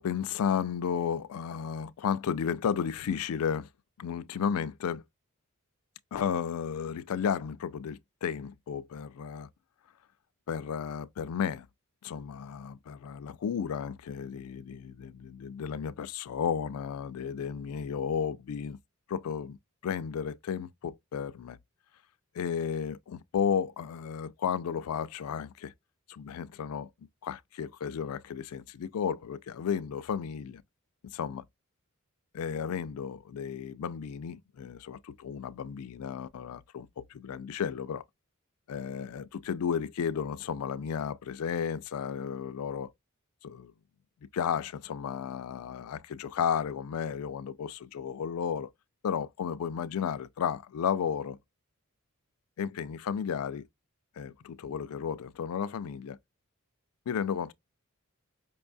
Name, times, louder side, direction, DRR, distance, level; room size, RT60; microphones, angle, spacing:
voice 1, 0.0-3.7 4.0-5.0 6.1-9.5 10.5-11.7 12.0-18.8 19.1-19.6 19.8-21.6 22.3-25.7 26.1-26.9 27.2-30.6 31.0-31.4 32.3-38.0 38.7-42.9 43.4-43.7 44.3-48.7 49.0-51.4 52.6-53.6 54.2-56.2 57.1-57.5, left 7 dB, 85° left, 0.4 m, -33 dB
5.3 x 2.2 x 2.5 m
head